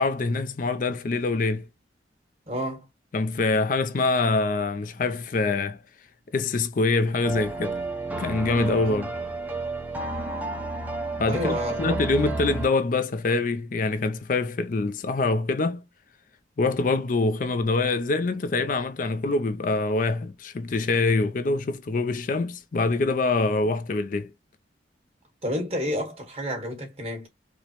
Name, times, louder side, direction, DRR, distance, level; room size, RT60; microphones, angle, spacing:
voice 1, 0.0-1.7 3.1-5.8 6.3-7.8 8.2-9.1 11.2-15.8 16.6-24.3, left 3 dB, 45° left, 0.4 m, -25 dB
voice 2, 2.5-2.8 8.8-9.0 11.3-12.0 25.4-27.3, equal, 35° right, 1.4 m, -30 dB
sound 1, 7.2-12.7, right 2 dB, 10° right, 0.7 m, -31 dB
4.9 x 2.1 x 2.9 m
head